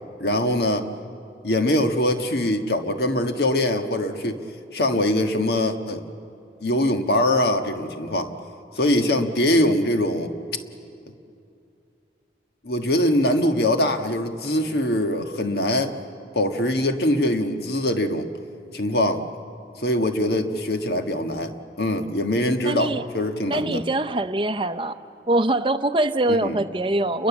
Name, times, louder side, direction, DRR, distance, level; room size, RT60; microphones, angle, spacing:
voice 1, 0.2-0.9 1.4-4.4 4.7-6.0 6.6-8.3 8.8-10.3 12.6-15.9 16.3-18.3 18.7-19.2 19.8-21.5 21.8-23.8 26.3-26.6, left 1 dB, 65° left, 6 dB, 1.6 m, -22 dB
voice 2, 22.6-23.0 23.5-25.0 25.3-27.3, right 1 dB, 30° right, 10 dB, 0.7 m, -23 dB
29.0 x 22.5 x 7.3 m, 2.6 s
head